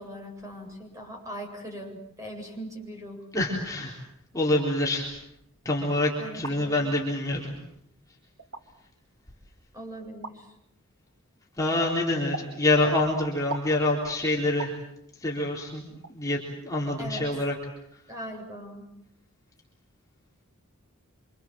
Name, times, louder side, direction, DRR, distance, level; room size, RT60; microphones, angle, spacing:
voice 1, 0.0-3.3 6.2-7.0 7.3-7.4 9.7-10.5 17.0-17.3 18.1-18.8, equal, 15° right, 1 dB, 7.9 m, -40 dB
voice 2, 3.3-3.9 4.3-5.2 5.6-7.5 11.6-14.7 15.1-17.5, left 1 dB, 15° left, -3 dB, 4.0 m, -26 dB
sound 1, 6.4-6.6 7.5-7.6 8.4-8.6 10.2-10.4 12.3-12.5 13.5-13.7 14.6-14.8 16.0-16.1 16.7-16.9 17.2-17.3, right 2 dB, 70° right, 2.7 m, -37 dB
28.0 x 27.0 x 7.7 m, 0.77 s
head